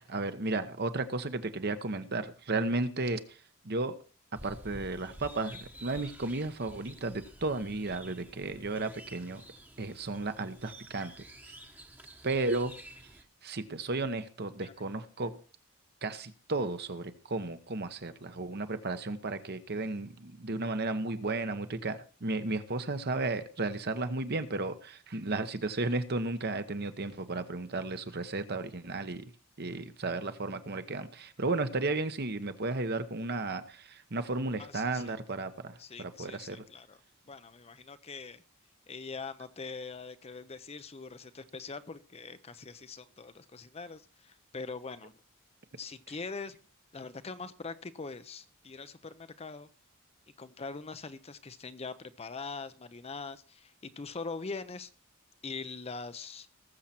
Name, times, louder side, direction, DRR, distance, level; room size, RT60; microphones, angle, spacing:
voice 1, 0.1-3.4 3.6-3.9 4.4-9.4 9.8-11.3 12.2-12.7 13.4-15.3 16.0-29.2 29.6-36.6, right 2 dB, 50° right, 10 dB, 1.0 m, -34 dB
sound 1, 4.3-13.2, right 1 dB, 10° right, 1.1 m, -51 dB
voice 2, 34.6-35.1 35.8-37.0 37.3-38.4 38.9-45.1 45.8-46.5 46.9-49.7 50.4-54.9 55.4-56.5, left 4 dB, 30° left, 13 dB, 0.6 m, -42 dB
19.0 x 7.4 x 4.4 m, 0.36 s
head